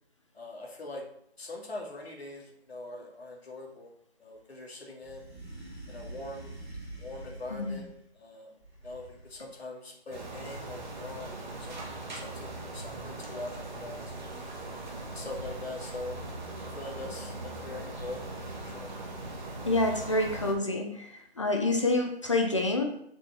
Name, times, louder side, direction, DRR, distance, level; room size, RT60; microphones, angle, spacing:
voice 1, 0.3-1.0 1.4-3.9 4.2-5.3 5.9-6.5 7.0-7.9 8.1-8.5 8.8-11.8 12.1-14.6 15.1-16.2 16.6-18.9, left 2 dB, 65° left, -1 dB, 2.7 m, -42 dB
sound 1, 5.0-8.0 8.6-9.5, right 1 dB, 5° right, 1.9 m, -45 dB
voice 2, 7.5-7.8 19.6-21.1 21.4-22.8, left 2 dB, 30° left, 2 dB, 0.7 m, -27 dB
sound 2, 10.1-20.5, right 2 dB, 45° right, 1.8 m, -40 dB
6.8 x 6.0 x 4.4 m, 0.71 s
figure-of-eight pair, 160°, 33 cm